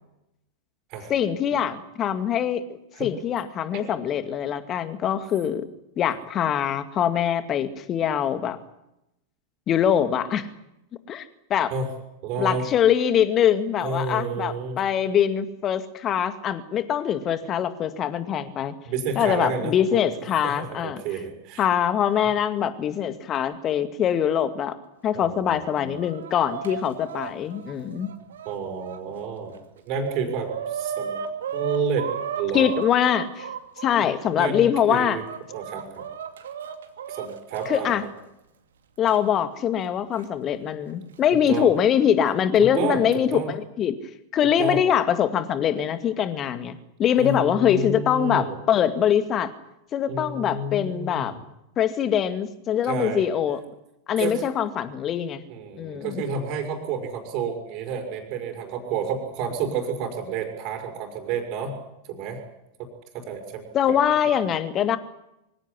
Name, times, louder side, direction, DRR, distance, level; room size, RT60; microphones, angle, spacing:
voice 1, 1.1-5.7 6.0-8.6 9.7-10.5 11.1-11.2 11.5-11.7 12.4-18.7 19.2-21.0 21.6-24.7 25.0-28.1 32.5-33.5 33.8-35.2 37.7-38.0 39.0-44.0 44.3-49.5 49.9-51.3 51.8-53.6 54.1-55.4 55.8-56.2 63.7-65.0, left 9 dB, 30° left, 11 dB, 2.1 m, -23 dB
voice 2, 12.2-12.6 13.8-14.8 18.9-20.0 20.4-21.7 25.1-26.0 28.5-29.5 29.9-31.3 31.5-32.1 32.4-32.7 33.9-35.2 35.5-36.0 37.1-38.0 41.5-41.7 42.6-43.0 43.3-43.5 44.6-44.8 47.2-48.5 50.1-51.4 52.8-53.2 54.2-54.5 55.5-61.7 62.1-62.4 62.8-62.9 63.1-64.0, right 5 dB, 40° right, 3 dB, 5.5 m, -30 dB
Chicken rooster, 25.5-29.0 29.5-29.6 29.9-33.9 34.6-37.8 39.1-39.2 40.2-40.3 41.2-41.6, right 8 dB, 65° right, 2.5 m, -35 dB
24.5 x 16.5 x 9.9 m, 0.86 s
figure-of-eight pair, 90°, 0 cm